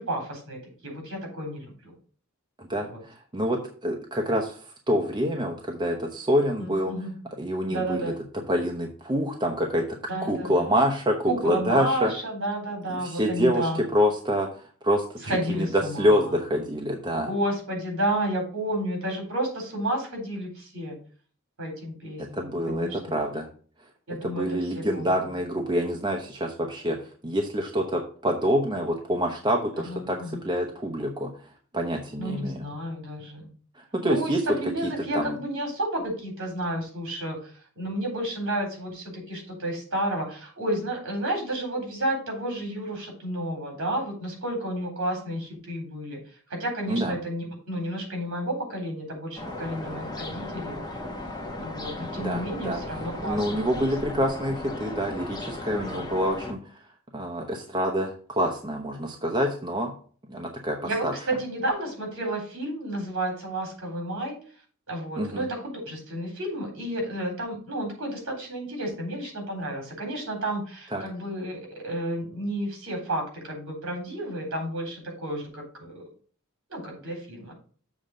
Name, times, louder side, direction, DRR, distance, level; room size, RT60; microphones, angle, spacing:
voice 1, 0.0-1.7 2.8-3.0 6.6-7.1 7.7-8.2 10.1-10.7 11.2-13.8 15.2-16.4 17.3-21.0 21.6-23.2 24.1-25.2 29.8-30.4 32.2-33.5 34.0-46.2 46.5-50.8 51.6-54.2 55.8-56.1 60.8-64.4 64.9-76.0 76.7-77.5, right 1 dB, 60° right, 1 dB, 3.9 m, -31 dB
voice 2, 2.6-6.9 7.4-8.1 8.5-10.0 10.2-12.1 13.0-17.3 22.2-23.5 24.2-27.0 27.2-30.2 30.4-31.3 31.7-32.7 33.8-34.4 35.1-35.4 46.9-47.1 52.2-52.8 53.2-56.6 57.1-59.9 60.3-60.8 61.0-61.1 65.2-65.4 70.9-71.0, equal, 20° right, 1 dB, 0.9 m, -26 dB
sound 1, 49.4-56.5, left 2 dB, 20° left, 1.3 m, -36 dB
7.3 x 3.9 x 6.5 m, 0.43 s
head